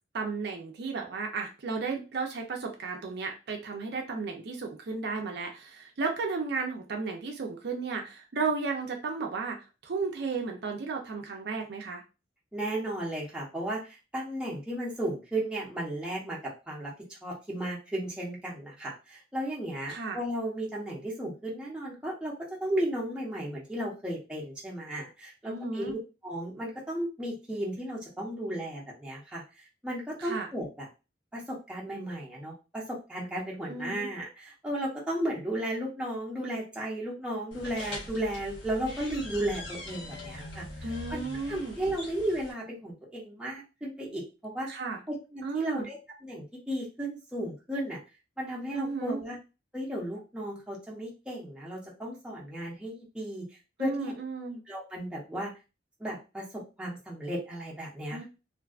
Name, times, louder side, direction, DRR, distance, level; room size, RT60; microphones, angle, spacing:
voice 1, 0.1-9.6 9.8-12.0 19.9-20.2 25.4-25.9 30.2-30.5 33.7-34.1 40.8-41.8 44.7-45.0 45.4-45.9 48.7-49.2 53.8-54.6 58.1-58.2, right 4 dB, 60° right, 2 dB, 0.4 m, -34 dB
voice 2, 12.5-16.4 16.7-22.3 22.6-26.0 26.2-30.9 31.3-41.2 41.5-44.7 45.1-48.0 48.4-49.4 49.7-53.4 53.8-54.1 54.7-55.5 56.0-58.2, right 1 dB, 5° right, -4 dB, 0.7 m, -34 dB
sound 1, 37.5-42.5, left 1 dB, 80° left, 1.0 m, -42 dB
2.5 x 2.3 x 2.3 m, 0.30 s
head